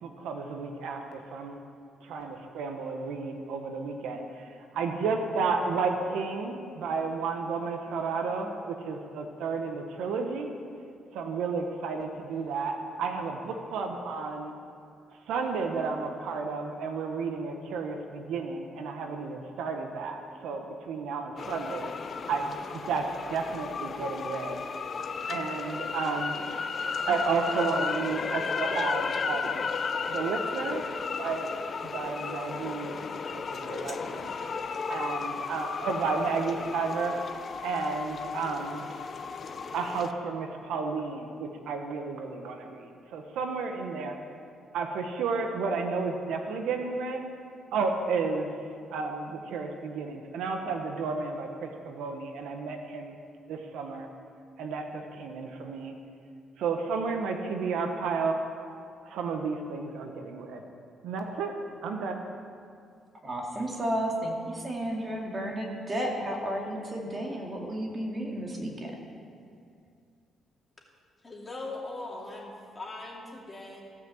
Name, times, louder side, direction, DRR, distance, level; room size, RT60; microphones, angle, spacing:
voice 1, 0.0-1.6 2.0-10.5 11.1-14.5 15.1-21.9 22.3-23.0 23.3-24.6 25.3-26.4 27.1-29.6 30.1-30.8 31.2-34.3 34.9-37.1 37.6-38.9 39.7-44.2 44.7-47.3 47.7-48.5 48.9-53.2 53.5-54.1 54.6-55.9 56.6-58.4 59.0-60.6 61.0-61.5 61.8-62.2, right 4 dB, 85° right, 4 dB, 1.1 m, -32 dB
sound 1, 21.4-40.1, left 5 dB, 45° left, 0.6 m, -34 dB
voice 2, 63.2-69.0, right 1 dB, 30° right, -1 dB, 2.3 m, -32 dB
voice 3, 71.2-73.8, left 2 dB, 25° left, -2 dB, 2.5 m, -40 dB
16.0 x 5.9 x 7.6 m, 2.4 s
cardioid pair, 100°, 0 cm